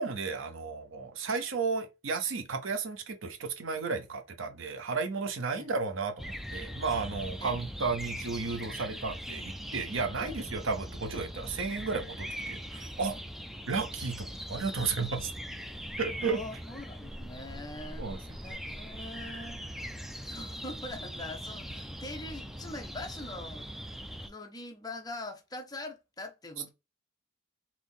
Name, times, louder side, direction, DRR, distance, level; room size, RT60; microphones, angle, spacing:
voice 1, 0.0-13.2 13.7-15.3 16.0-16.4 18.0-18.2, right 4 dB, 85° right, 0.8 m, -33 dB
sound 1, 6.2-24.3, equal, ahead, 0.4 m, -41 dB
voice 2, 16.2-18.1 18.4-19.9 20.2-23.7 24.2-26.7, left 2 dB, 20° left, 0.8 m, -43 dB
4.2 x 2.9 x 3.5 m
head